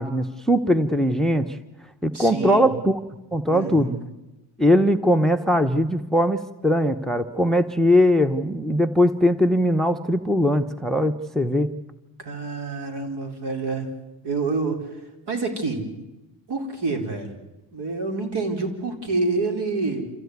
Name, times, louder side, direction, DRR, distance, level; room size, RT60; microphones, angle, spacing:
voice 1, 0.0-1.6 2.0-3.0 3.3-3.9 4.6-11.7, equal, ahead, 11 dB, 0.9 m, -20 dB
voice 2, 2.1-2.7 3.5-4.0 12.2-13.9 14.2-15.0 15.3-15.9 16.5-17.3 17.7-20.0, right 3 dB, 60° right, 5 dB, 4.5 m, -27 dB
27.5 x 15.0 x 9.6 m, 1.0 s
cardioid pair, 105°, 46 cm